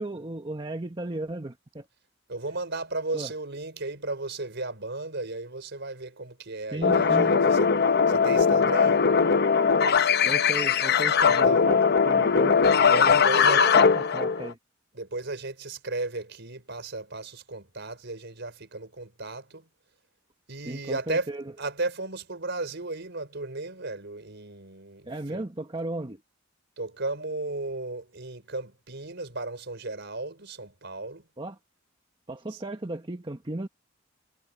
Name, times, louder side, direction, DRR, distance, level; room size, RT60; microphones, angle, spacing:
voice 1, 0.0-1.9 3.1-3.3 6.7-7.4 10.2-11.8 12.1-12.5 12.8-14.6 20.6-21.5 25.0-26.2 31.4-31.6 32.3-33.7, right 2 dB, 25° right, 1.2 m, -35 dB
voice 2, 2.3-7.7 8.1-9.0 11.3-11.6 12.8-13.7 14.9-19.7 20.5-21.3 21.6-25.4 26.8-31.3 32.5-32.6, right 2 dB, 60° right, 5.1 m, -35 dB
sound 1, 6.8-14.5, left 6 dB, 55° left, 0.8 m, -20 dB
head